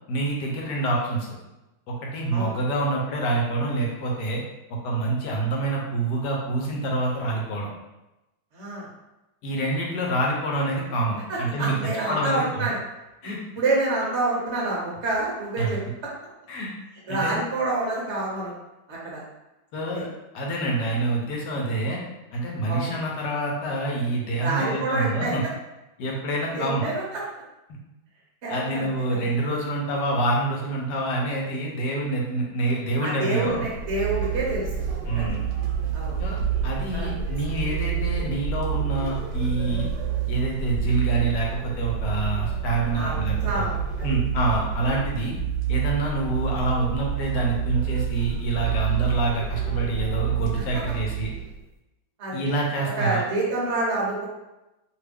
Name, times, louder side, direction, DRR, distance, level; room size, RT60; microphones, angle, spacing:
voice 1, 0.1-1.3 1.9-4.4 4.8-7.7 9.4-11.7 12.1-12.7 13.2-13.4 15.6-15.8 16.5-16.7 17.1-17.4 19.7-20.1 20.3-22.0 22.3-25.4 26.0-26.9 28.5-33.6 35.1-35.5 36.2-39.9 40.3-43.7 44.0-45.3 45.7-51.3 52.3-53.2, right 2 dB, 75° left, -2 dB, 1.3 m, -26 dB
voice 2, 8.5-8.9 11.3-12.8 13.2-16.1 17.1-18.5 18.9-19.2 19.7-20.0 22.6-22.9 24.4-25.3 26.5-27.2 28.4-28.9 33.0-34.9 35.1-35.4 35.9-36.2 36.9-37.1 42.9-44.1 44.9-45.0 52.2-52.4 53.0-54.3, right 2 dB, 55° right, -5 dB, 0.9 m, -28 dB
sound 1, 33.4-51.6, right 8 dB, 75° right, 1.1 m, -28 dB
2.9 x 2.4 x 3.4 m, 0.97 s
omnidirectional pair, 1.8 m